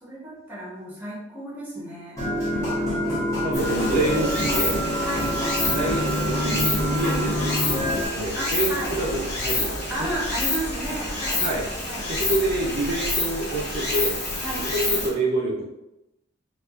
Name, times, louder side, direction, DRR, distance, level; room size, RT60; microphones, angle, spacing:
voice 1, 0.0-2.2 2.6-3.4 5.0-5.4 7.0-7.3 8.3-9.0 9.9-11.5 11.8-12.1 14.4-14.7, right 1 dB, 10° right, -6 dB, 1.0 m, -33 dB
sound 1, 2.2-8.1, equal, 15° left, 1.1 m, -26 dB
voice 2, 3.1-4.8 5.7-7.3 7.7-10.1 11.4-11.6 12.1-14.2 14.7-15.6, right 2 dB, 50° right, -3 dB, 0.6 m, -27 dB
Stream, 3.5-15.1, left 2 dB, 55° left, 1.1 m, -28 dB
4.4 x 2.4 x 2.4 m, 0.92 s
head